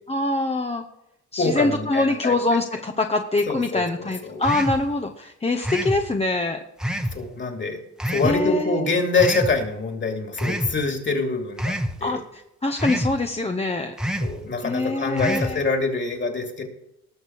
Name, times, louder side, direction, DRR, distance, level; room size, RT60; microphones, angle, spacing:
voice 1, 0.1-0.8 1.3-6.6 8.2-8.9 12.0-13.9 14.6-15.6, left 2 dB, 20° left, 4 dB, 1.0 m, -24 dB
voice 2, 1.4-2.3 3.5-4.4 7.1-7.8 8.1-12.2 14.2-16.6, left 3 dB, 40° left, 3 dB, 3.0 m, -25 dB
sound 1, 4.4-4.9 5.6-6.0 6.8-7.2 8.0-8.4 9.2-9.5 10.4-10.8 11.6-12.0 12.8-13.2 14.0-14.4 15.2-15.6, equal, ahead, 1.2 m, -26 dB
19.5 x 6.7 x 4.8 m, 0.83 s
cardioid pair, 90°, 30 cm